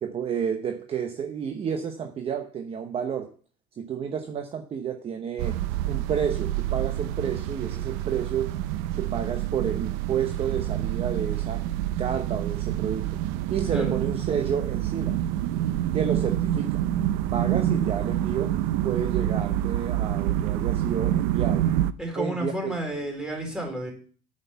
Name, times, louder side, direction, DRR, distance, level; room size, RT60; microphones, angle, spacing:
voice 1, 0.0-3.3 3.8-5.6 5.8-8.5 8.9-11.6 12.0-13.2 13.5-15.2 15.9-16.8 17.3-18.5 18.8-21.7 22.1-22.8, right 7 dB, 35° right, 6 dB, 1.0 m, -30 dB
sound 1, 5.4-21.9, right 12 dB, 90° right, 0.6 m, -27 dB
voice 2, 22.0-23.9, right 1 dB, 5° right, 0 dB, 4.1 m, -31 dB
9.2 x 6.5 x 7.0 m, 0.42 s
cardioid pair, 130°, 17 cm